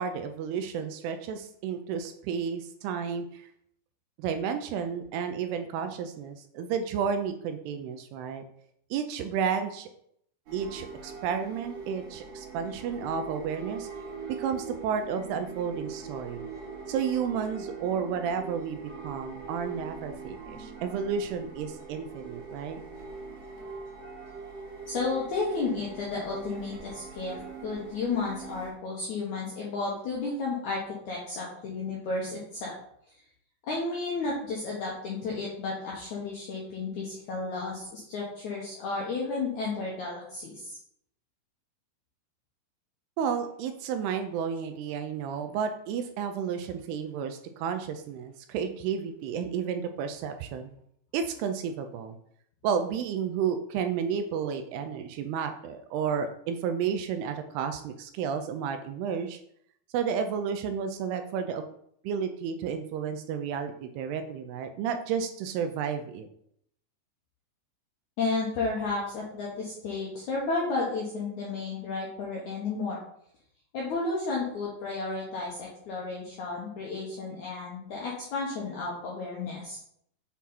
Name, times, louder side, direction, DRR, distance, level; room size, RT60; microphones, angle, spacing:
voice 1, 0.0-3.5 4.2-8.4 8.9-9.9 10.5-13.9 14.4-16.5 16.9-22.8 43.2-50.7 51.1-52.2 52.6-59.4 59.9-61.6 62.0-66.3, right 7 dB, 80° right, 7 dB, 2.4 m, -32 dB
sound 1, 10.5-28.7, right 4 dB, 55° right, 2.7 m, -42 dB
voice 2, 24.9-32.8 33.7-40.8 68.2-73.0 73.7-79.8, left 3 dB, 75° left, -4 dB, 1.8 m, -32 dB
7.1 x 3.7 x 4.3 m, 0.69 s
omnidirectional pair, 4.9 m